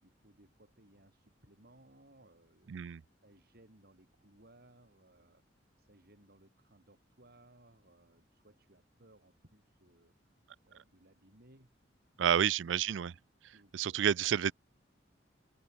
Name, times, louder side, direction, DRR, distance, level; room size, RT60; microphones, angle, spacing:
voice 1, 0.0-2.9 3.2-10.4 10.6-11.7 13.5-14.4, right 1 dB, 55° right, 6.0 m, -63 dB
voice 2, 2.7-3.0 12.2-13.1 13.7-14.5, right 9 dB, 80° right, 0.4 m, -29 dB
open air
head